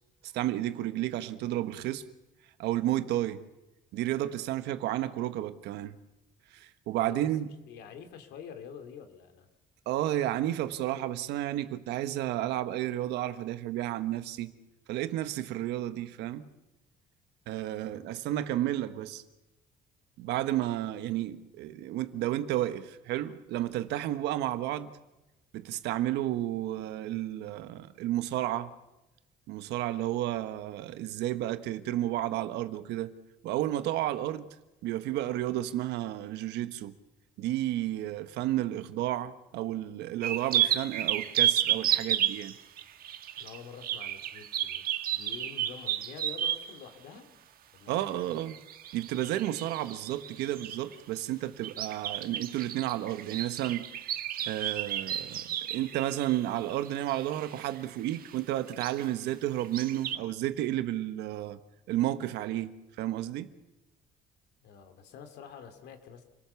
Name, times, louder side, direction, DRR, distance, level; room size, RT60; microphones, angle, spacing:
voice 1, 0.2-2.0 2.6-3.4 3.9-6.0 6.5-7.5 9.8-14.5 14.9-16.5 17.5-19.2 20.2-24.9 25.5-28.7 29.5-33.1 33.4-34.5 34.8-36.9 37.4-42.5 47.9-48.6 48.9-53.8 54.5-61.6 61.9-62.7 63.0-63.5, right 13 dB, 85° right, 1.3 m, -32 dB
voice 2, 7.7-9.5 17.8-18.1 43.4-44.9 45.1-47.3 47.7-48.4 64.6-66.2, left 7 dB, 80° left, 3.0 m, -47 dB
sound 1, 40.2-46.8 48.4-50.9 51.6-57.8 58.1-58.4 58.7-59.1 59.6-60.2, right 11 dB, 60° right, 1.4 m, -32 dB
29.0 x 18.5 x 7.1 m
cardioid pair, 110°, 17 cm